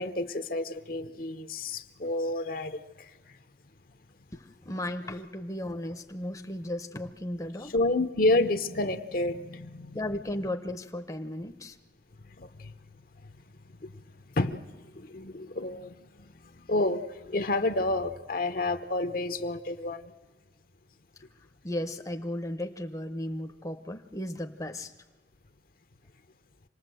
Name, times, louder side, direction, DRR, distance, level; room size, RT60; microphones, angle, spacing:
voice 1, 0.0-2.8 7.7-10.0 12.4-12.5 14.4-14.6 15.0-15.9 16.7-17.0 17.3-20.0, left 2 dB, 50° left, 9 dB, 0.8 m, -29 dB
voice 2, 4.3-7.7 9.9-11.8 21.6-24.9, left 1 dB, 15° left, 5 dB, 0.8 m, -35 dB
26.0 x 19.0 x 7.8 m, 1.3 s
head